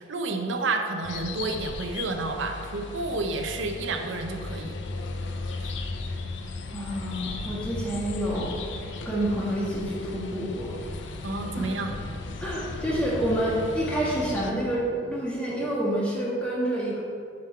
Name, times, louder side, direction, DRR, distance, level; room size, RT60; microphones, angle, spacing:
voice 1, 0.0-4.8 5.6-5.7 11.2-11.9, right 3 dB, 70° right, 4 dB, 0.7 m, -30 dB
sound 1, 1.0-14.5, left 3 dB, 65° left, 0.6 m, -36 dB
voice 2, 6.7-8.7 9.0-10.7 11.0-11.1 11.5-11.9 12.4-17.0, right 1 dB, 5° left, -7 dB, 1.6 m, -28 dB
7.6 x 3.7 x 5.8 m, 2.4 s
head